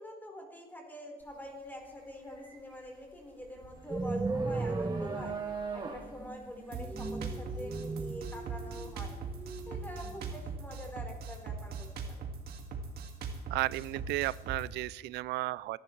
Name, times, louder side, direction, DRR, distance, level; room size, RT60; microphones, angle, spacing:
voice 1, 0.0-5.4 5.7-9.2 9.7-12.3, left 1 dB, 10° left, 0 dB, 4.4 m, -46 dB
sound 1, 1.2-1.5 1.8-8.8, right 4 dB, 25° right, 2.6 m, -42 dB
sound 2, 3.9-10.6, right 3 dB, 10° right, 0.4 m, -37 dB
Drum kit, 6.7-14.7, right 4 dB, 65° right, 2.1 m, -40 dB
voice 2, 13.5-15.8, right 18 dB, 80° right, 21 dB, 0.4 m, -33 dB
29.0 x 11.5 x 3.3 m, 1.2 s
cardioid pair, 110°, 17 cm